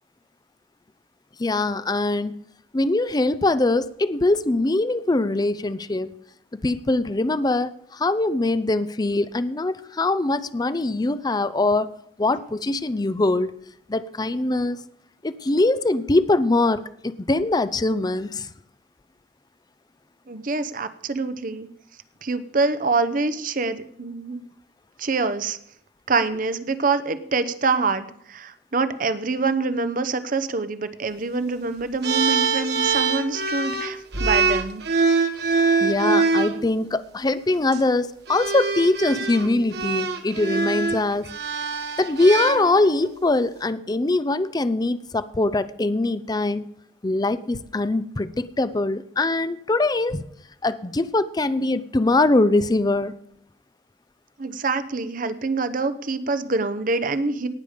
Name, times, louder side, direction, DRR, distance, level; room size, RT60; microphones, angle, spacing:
voice 1, 1.4-2.4 2.7-6.1 6.5-11.9 12.2-13.5 13.9-14.8 15.2-18.5 35.8-41.3 42.0-46.6 47.0-50.2 50.6-53.2, left 2 dB, 25° left, 14 dB, 0.5 m, -22 dB
voice 2, 20.3-21.7 22.2-24.4 25.0-25.6 26.1-34.8 54.4-57.5, right 3 dB, 50° right, 12 dB, 0.8 m, -25 dB
sound 1, 32.0-36.5 37.5-37.8 38.3-43.1, right 4 dB, 65° right, 1.3 m, -24 dB
18.5 x 6.9 x 5.0 m, 0.69 s
head